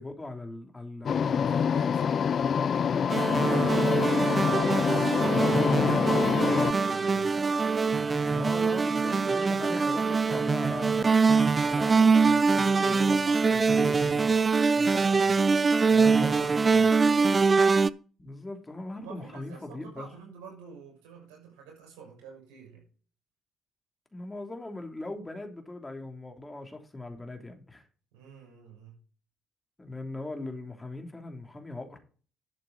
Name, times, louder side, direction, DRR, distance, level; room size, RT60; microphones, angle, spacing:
voice 1, 0.0-1.5 2.8-3.1 8.3-11.1 11.6-14.4 14.7-14.9 15.9-16.9 18.2-20.1 24.1-27.9 29.8-32.0, left 2 dB, 20° left, 5 dB, 3.1 m, -40 dB
sound 1, 1.1-6.7, left 7 dB, 50° left, 0.4 m, -26 dB
voice 2, 1.3-2.2 3.4-8.5 14.8-15.4 15.8-17.4 18.9-22.8 28.1-29.0, right 6 dB, 75° right, 0 dB, 6.9 m, -48 dB
sound 2, 3.1-17.9, right 4 dB, 35° right, 0.6 m, -23 dB
12.5 x 7.7 x 4.1 m, 0.39 s
hypercardioid pair, 45°, 0 cm